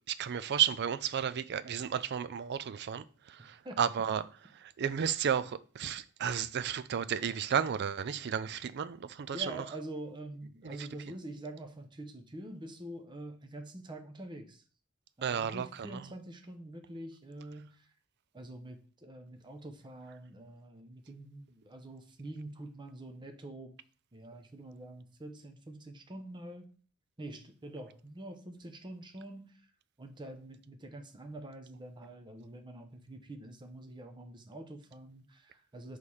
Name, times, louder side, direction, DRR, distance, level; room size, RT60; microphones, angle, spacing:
voice 1, 0.1-4.2 4.5-9.6 10.6-10.9 15.2-16.0, right 8 dB, 55° right, 0.4 m, -33 dB
voice 2, 9.3-14.6 15.2-17.9 18.3-23.7 24.1-26.7 27.2-29.6 30.0-36.0, right 1 dB, 25° right, 0.8 m, -46 dB
6.5 x 3.2 x 5.5 m
head